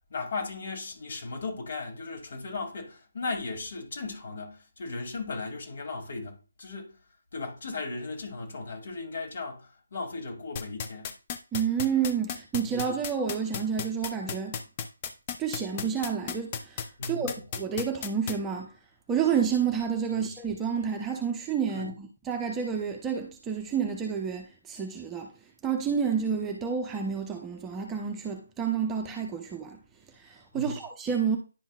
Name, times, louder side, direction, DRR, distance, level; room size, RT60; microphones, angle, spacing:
voice 1, 0.1-7.0 7.3-11.1 17.0-17.4 20.1-20.3 21.7-21.9 30.5-30.8, left 3 dB, 50° left, 2.5 m, -36 dB
sound 1, 10.6-18.3, left 7 dB, 25° left, 0.7 m, -33 dB
voice 2, 11.5-14.6 15.4-18.7 19.1-25.3 25.6-29.8 30.2-31.4, right 7 dB, 10° right, 0.8 m, -29 dB
10.5 x 5.5 x 2.4 m
figure-of-eight pair, 150°, 0 cm